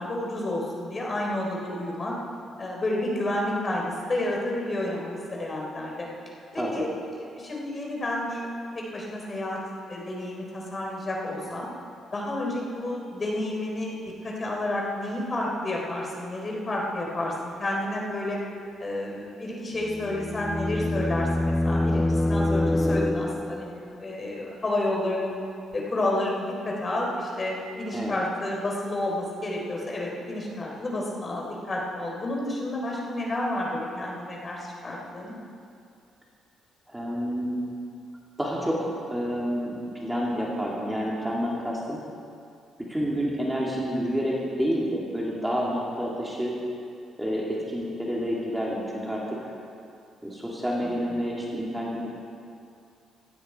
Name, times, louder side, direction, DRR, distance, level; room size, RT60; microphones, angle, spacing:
voice 1, 0.0-2.1 2.6-6.1 6.5-6.9 7.2-8.5 8.7-9.6 9.9-11.7 12.1-13.9 14.2-18.4 18.8-25.3 25.7-35.3 51.1-51.2, left 1 dB, 35° left, -2 dB, 4.0 m, -30 dB
sound 1, 19.8-23.8, left 1 dB, 10° left, 0.4 m, -25 dB
voice 2, 36.9-37.6 38.4-39.8 40.0-42.0 42.9-46.5 47.2-49.4 50.2-52.1, equal, 10° right, -4 dB, 3.0 m, -29 dB
17.0 x 15.5 x 4.7 m, 2.4 s
cardioid pair, 90°, 0 cm